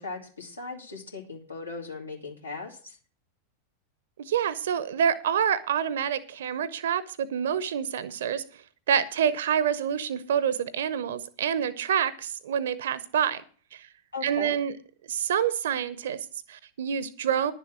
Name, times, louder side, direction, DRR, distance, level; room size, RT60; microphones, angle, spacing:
voice 1, 0.0-3.0 14.1-14.6, left 4 dB, 80° left, -1 dB, 2.4 m, -38 dB
voice 2, 4.2-8.4 8.9-13.4 13.7-13.9 14.2-14.7 15.1-17.5, right 8 dB, 60° right, 18 dB, 0.7 m, -27 dB
11.0 x 6.9 x 7.3 m, 0.41 s
figure-of-eight pair, 90°, 0 cm